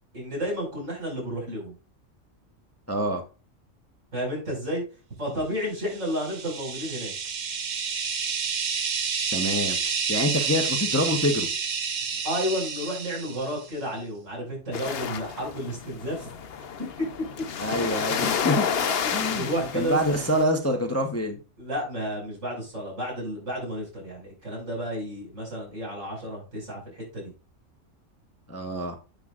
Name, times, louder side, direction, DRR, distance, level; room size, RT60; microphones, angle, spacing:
voice 1, 0.1-1.7 4.1-4.8 5.2-7.1 12.2-16.3 16.8-16.9 19.3-20.3 21.6-27.3, equal, 75° right, -2 dB, 5.9 m, -31 dB
voice 2, 2.9-3.2 9.3-9.8 10.1-11.5 17.6-18.7 19.1-21.4 28.5-29.0, equal, 15° left, 4 dB, 0.9 m, -26 dB
sound 1, 5.9-13.7, right 6 dB, 45° right, 0.7 m, -29 dB
sound 2, 14.7-20.4, left 7 dB, 55° left, 0.9 m, -30 dB
10.0 x 7.6 x 2.5 m, 0.32 s
omnidirectional pair, 1.3 m